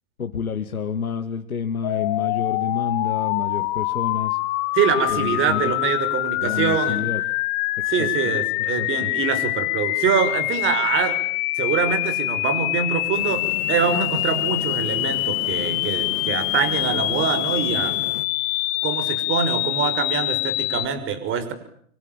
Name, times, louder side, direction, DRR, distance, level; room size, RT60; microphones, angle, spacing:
voice 1, 0.2-4.4 5.1-5.7 6.4-7.2 7.9-8.3 8.7-9.1, left 6 dB, 90° left, 5 dB, 2.4 m, -29 dB
sound 1, 1.8-20.8, left 21 dB, 40° left, 1.5 m, -25 dB
voice 2, 4.8-7.0 7.9-11.2 11.6-17.9 18.8-21.5, right 7 dB, 30° right, 12 dB, 5.8 m, -24 dB
sound 2, 13.1-18.3, left 10 dB, 70° left, 2.4 m, -35 dB
26.5 x 25.0 x 9.2 m, 0.66 s
hypercardioid pair, 125°, 42 cm